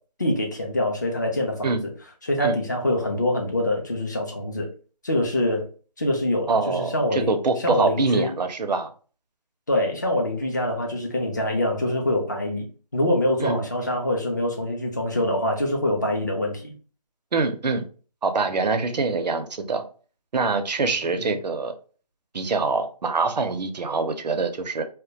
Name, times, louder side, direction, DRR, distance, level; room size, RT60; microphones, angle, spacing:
voice 1, 0.2-1.8 2.2-4.7 5.0-5.7 6.0-7.3 7.6-8.3 9.7-12.6 12.9-16.7 21.0-21.3, left 1 dB, 30° left, 1 dB, 0.4 m, -25 dB
voice 2, 6.5-8.9 13.4-13.6 17.3-17.8 18.2-19.8 20.3-21.7 22.3-24.8, right 4 dB, 85° right, 7 dB, 0.5 m, -24 dB
2.2 x 2.1 x 2.6 m, 0.39 s
figure-of-eight pair, 160°, 21 cm